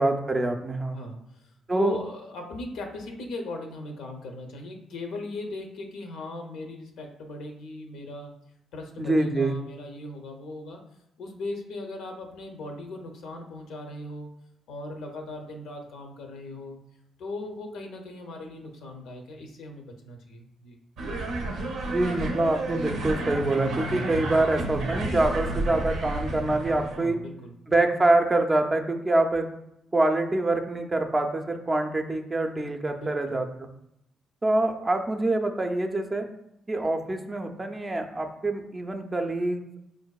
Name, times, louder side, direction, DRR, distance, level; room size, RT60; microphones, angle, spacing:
voice 1, 0.0-1.0 1.7-2.0 9.0-9.5 21.9-27.2 27.7-29.5 29.9-33.5 34.4-36.3 36.7-39.8, right 2 dB, 25° right, 4 dB, 0.4 m, -25 dB
voice 2, 0.9-8.3 8.7-10.8 11.2-14.3 14.7-16.8 17.2-20.8 27.0-27.5 33.0-33.4, left 2 dB, 80° left, 2 dB, 0.6 m, -38 dB
sound 1, 21.0-27.0, right 2 dB, 80° right, 0.5 m, -31 dB
4.5 x 2.5 x 2.3 m, 0.81 s
cardioid pair, 90°, 0 cm